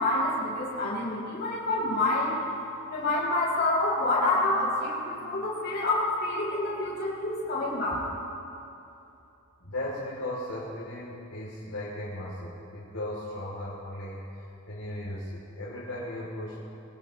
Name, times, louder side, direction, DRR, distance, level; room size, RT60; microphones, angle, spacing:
voice 1, 0.0-2.4 2.9-8.0, left 2 dB, 50° left, -6 dB, 5.1 m, -27 dB
voice 2, 9.6-16.7, left 1 dB, 90° left, -7 dB, 3.2 m, -37 dB
25.0 x 18.0 x 3.2 m, 2.8 s
head